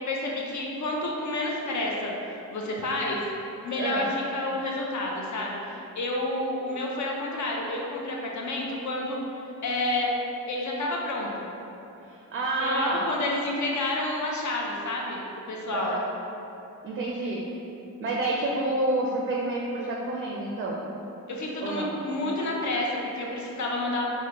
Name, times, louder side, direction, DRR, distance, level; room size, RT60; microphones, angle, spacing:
voice 1, 0.0-3.2 3.6-10.1 10.5-11.5 12.6-16.0 21.3-24.1, left 2 dB, 55° left, -2 dB, 0.6 m, -30 dB
voice 2, 3.8-4.1 12.1-13.0 15.7-16.0 16.8-17.4 18.0-20.8 21.6-21.9, right 2 dB, 35° right, -3 dB, 0.4 m, -29 dB
3.4 x 2.1 x 2.8 m, 2.9 s
cardioid pair, 60°, 36 cm